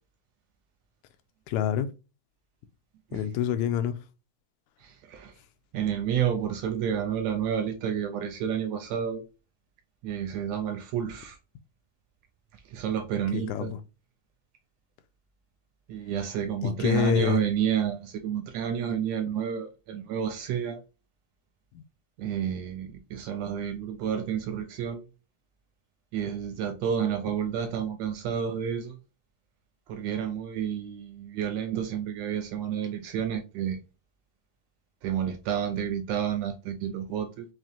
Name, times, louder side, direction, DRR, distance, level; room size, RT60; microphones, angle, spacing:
voice 1, 1.5-1.9 3.1-4.0 13.3-13.8 16.6-17.4, left 10 dB, 85° left, 2.0 m, -26 dB
voice 2, 4.8-5.3 5.7-9.2 10.0-11.4 12.7-13.7 15.9-20.8 22.2-25.0 26.1-29.0 29.9-33.8 35.0-37.5, right 8 dB, 80° right, 1.6 m, -30 dB
5.8 x 2.7 x 2.3 m
omnidirectional pair, 3.4 m